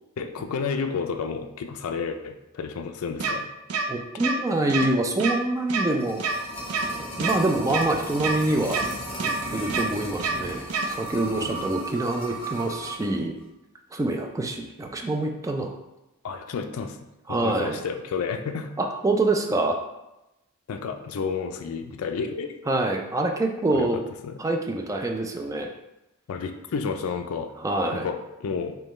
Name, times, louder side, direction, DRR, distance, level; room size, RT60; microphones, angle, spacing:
voice 1, 0.2-3.4 11.4-11.7 16.2-17.0 17.3-18.7 20.7-22.5 23.7-23.9 24.2-24.4 26.3-27.5 27.9-28.8, left 5 dB, 70° left, 7 dB, 0.4 m, -31 dB
sound 1, 3.2-3.3 3.7-3.8 4.2-4.3 4.7-4.9 5.2-5.3 5.7-5.8 6.2-6.3 6.7-6.9 7.2-7.3 7.7-7.8 8.2-8.3 8.7-8.9 9.2-9.3 9.7-9.8 10.2-10.3 10.7-10.9, right 5 dB, 75° right, 0.5 m, -26 dB
voice 2, 3.9-6.2 7.2-8.8 9.2-13.4 13.9-15.8 17.3-17.8 18.8-19.8 22.7-24.0 24.4-25.7 27.6-28.1, right 2 dB, 15° right, 3 dB, 0.3 m, -26 dB
sound 2, 5.7-13.1 13.4-13.5, right 1 dB, 25° left, 1.0 m, -36 dB
5.2 x 2.2 x 3.1 m, 0.95 s
head